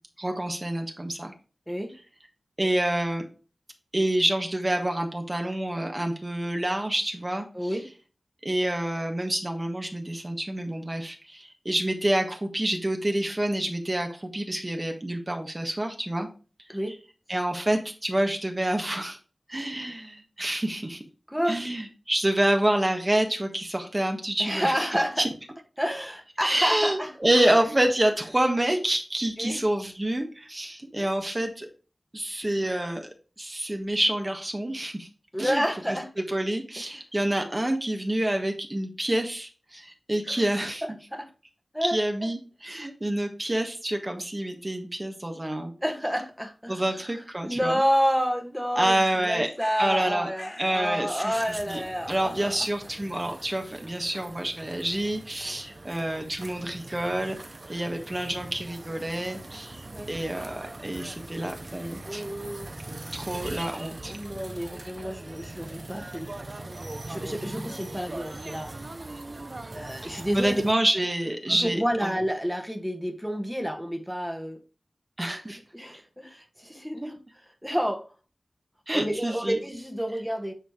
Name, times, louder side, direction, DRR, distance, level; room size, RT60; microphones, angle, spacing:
voice 1, 0.2-1.3 2.6-3.3 3.9-7.8 8.4-16.3 17.3-19.2 19.5-21.0 21.5-24.9 25.2-25.3 26.4-31.7 32.1-33.1 33.4-35.1 35.4-36.0 36.3-40.8 41.8-45.7 46.7-47.8 48.7-49.5 49.8-50.3 50.6-51.8 52.1-57.4 57.7-62.2 63.1-64.1 70.0-72.1 75.2-75.6 77.0-77.1 78.9-79.6, right 1 dB, 25° right, 1.5 m, -28 dB
voice 2, 7.5-7.9 16.7-16.9 21.3-21.6 24.4-25.2 25.8-27.1 29.4-29.6 35.3-36.1 40.2-40.4 41.1-41.3 41.7-42.0 45.8-47.1 47.4-49.0 49.2-52.6 59.9-60.1 62.1-63.1 64.1-66.3 67.0-68.7 69.7-70.6 71.5-74.6 75.7-77.2 77.6-78.1 78.9-80.5, equal, ahead, 1.5 m, -29 dB
sound 1, 48.8-49.3 49.6-50.1 50.3-50.8 51.2-51.6, left 2 dB, 40° left, 0.9 m, -44 dB
sound 2, 51.3-70.7, right 2 dB, 50° right, 0.8 m, -41 dB
9.2 x 3.3 x 5.0 m
wide cardioid pair, 60°, 0 cm